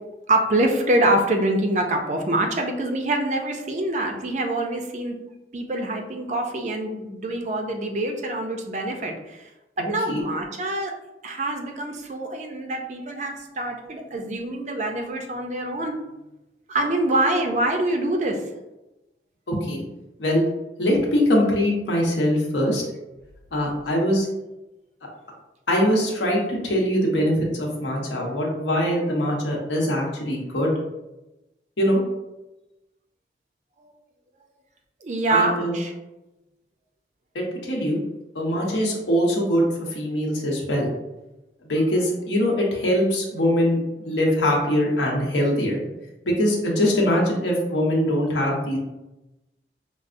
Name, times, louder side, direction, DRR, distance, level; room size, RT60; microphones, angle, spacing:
voice 1, 0.3-5.1 5.5-9.4 9.8-10.9 11.2-15.9 16.7-18.4 35.0-35.9, right 1 dB, 40° right, 4 dB, 0.4 m, -25 dB
voice 2, 9.8-10.2 19.5-19.9 20.2-20.4 20.8-22.8 23.5-24.3 25.7-30.7 31.8-32.0 35.3-35.8 37.3-38.0 38.3-40.9 41.6-43.8 44.0-45.8 46.2-48.8, equal, 85° left, -2 dB, 0.9 m, -22 dB
5.2 x 2.0 x 2.5 m, 1.0 s
head